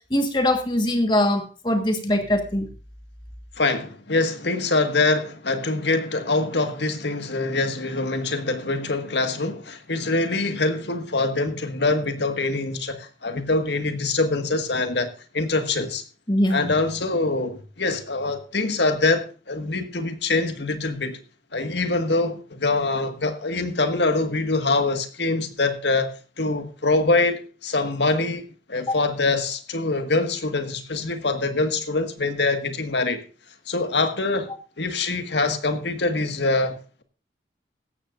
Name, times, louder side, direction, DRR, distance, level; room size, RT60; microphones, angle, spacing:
voice 1, 0.1-2.7 16.3-16.7 28.9-29.0, left 1 dB, 25° left, 1.6 m, -22 dB
voice 2, 3.6-16.0 16.5-21.2 21.5-26.1 26.4-33.2 33.7-34.5 34.8-37.0, left 3 dB, 80° left, 1.8 m, -24 dB
16.5 x 14.0 x 2.6 m
head